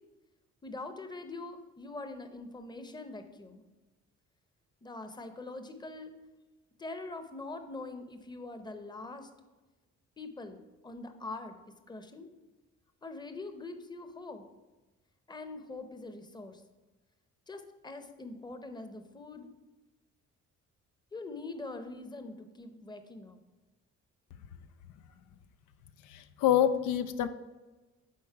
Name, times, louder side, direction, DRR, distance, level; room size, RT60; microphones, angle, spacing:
voice 1, 0.6-3.7 4.8-6.1 6.8-9.3 10.2-10.6 10.8-11.6 11.9-12.3 13.0-14.4 15.3-16.6 17.5-19.5 21.1-23.4, left 2 dB, 15° left, 8 dB, 0.7 m, -43 dB
voice 2, 26.1-27.3, left 10 dB, 85° left, 11 dB, 0.5 m, -26 dB
8.6 x 4.0 x 4.6 m, 1.2 s
cardioid pair, 90°, 30 cm